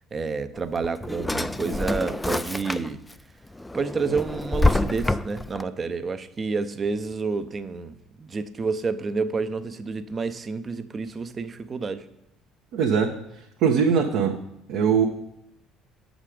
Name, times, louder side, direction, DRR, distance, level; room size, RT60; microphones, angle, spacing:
voice 1, 0.1-3.0 3.7-12.1, right 4 dB, 35° right, 11 dB, 0.6 m, -29 dB
Drawer open or close, 0.6-3.1 3.6-5.6, left 2 dB, 10° left, 0.3 m, -26 dB
voice 2, 12.7-13.1 13.6-14.4 14.7-15.1, right 6 dB, 60° right, 1 dB, 0.7 m, -21 dB
7.4 x 5.1 x 4.9 m, 0.81 s
figure-of-eight pair, 55°, 0 cm